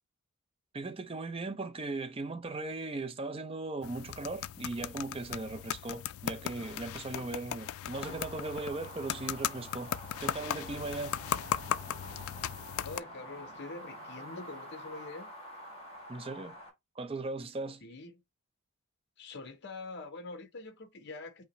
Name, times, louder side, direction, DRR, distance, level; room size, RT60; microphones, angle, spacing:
voice 1, 0.7-11.2 16.1-16.6 17.0-17.8, right 2 dB, 25° right, 0.5 m, -38 dB
sound 1, 3.8-13.0, left 10 dB, 75° left, 0.3 m, -37 dB
sound 2, 7.9-16.7, equal, 25° left, 1.8 m, -48 dB
sound 3, 10.4-15.3, right 4 dB, 75° right, 0.6 m, -56 dB
voice 2, 12.8-15.3 17.8-18.1 19.2-21.4, left 3 dB, 50° left, 0.7 m, -44 dB
5.6 x 2.1 x 4.0 m
head